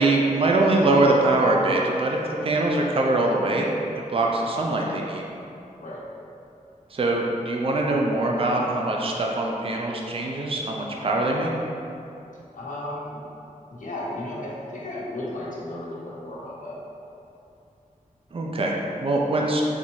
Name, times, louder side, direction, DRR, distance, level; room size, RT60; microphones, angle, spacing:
voice 1, 0.0-3.7 4.1-5.3 6.9-11.5 18.3-19.6, right 2 dB, 40° right, -1 dB, 0.4 m, -23 dB
voice 2, 12.5-13.2 13.7-16.8, left 1 dB, 70° left, -6 dB, 0.9 m, -34 dB
4.1 x 3.4 x 3.1 m, 2.7 s
wide cardioid pair, 95°, 14 cm